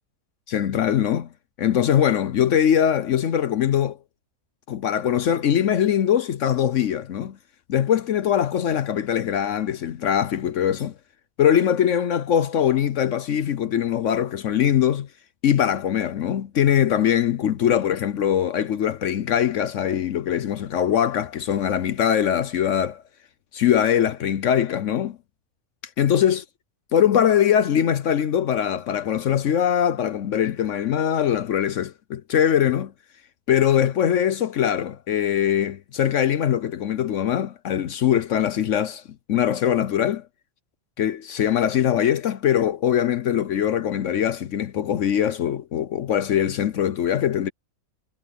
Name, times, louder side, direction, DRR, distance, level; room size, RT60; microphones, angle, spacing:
voice 1, 0.5-1.3 1.6-4.0 4.7-7.4 7.7-10.9 11.4-15.1 15.4-23.0 23.5-25.2 26.0-26.4 26.9-32.9 33.5-39.0 39.3-40.2 41.0-47.5, left 9 dB, 65° left, 1.0 m, -22 dB
omnidirectional pair, 1.4 m